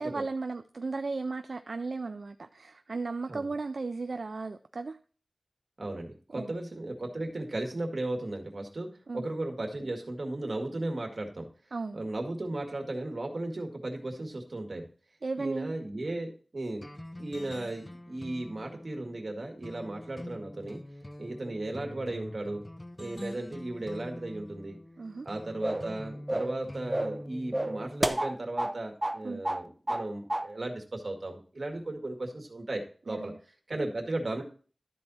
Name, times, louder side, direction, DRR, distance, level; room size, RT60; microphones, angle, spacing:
voice 1, 0.0-5.0 6.3-6.5 9.1-9.3 11.7-12.0 15.2-15.7 25.0-25.3 29.2-29.4 33.1-33.4, right 3 dB, 85° right, 9 dB, 0.3 m, -35 dB
voice 2, 5.8-8.9 9.1-11.5 11.9-14.9 15.4-16.9 17.2-20.8 21.2-22.6 23.0-24.8 25.3-33.3 33.7-34.4, right 2 dB, 65° right, 2 dB, 1.9 m, -36 dB
sound 1, 16.8-28.1, left 1 dB, 20° left, 0.7 m, -45 dB
sound 2, 25.6-25.9 26.3-26.6 26.9-27.2 27.5-28.7 29.0-29.2 29.4-30.0 30.3-30.5, right 1 dB, 20° right, 0.6 m, -30 dB
12.5 x 4.4 x 4.1 m, 0.41 s
wide cardioid pair, 65°, 0 cm